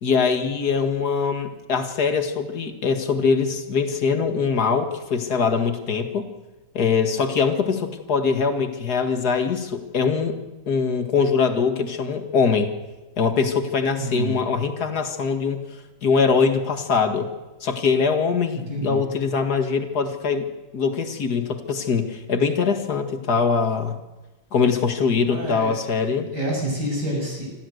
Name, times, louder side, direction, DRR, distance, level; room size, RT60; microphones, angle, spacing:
voice 1, 0.0-6.3 6.7-10.4 10.7-12.7 13.2-15.6 16.0-17.3 17.6-20.5 20.7-24.0 24.5-26.3, left 5 dB, 55° left, 6 dB, 2.4 m, -22 dB
voice 2, 14.0-14.4 18.5-19.0 25.3-27.5, right 1 dB, 55° right, -2 dB, 7.9 m, -28 dB
26.0 x 15.5 x 8.0 m, 1.2 s
omnidirectional pair, 2.1 m